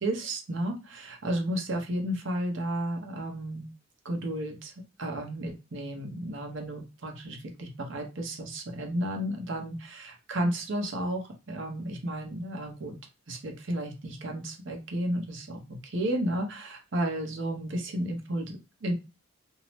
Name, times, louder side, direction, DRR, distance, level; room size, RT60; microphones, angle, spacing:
voice 1, 0.0-3.7 4.0-4.7 5.0-13.0 13.3-18.9, right 1 dB, 60° right, 3 dB, 0.7 m, -33 dB
2.7 x 2.0 x 3.0 m, 0.29 s
head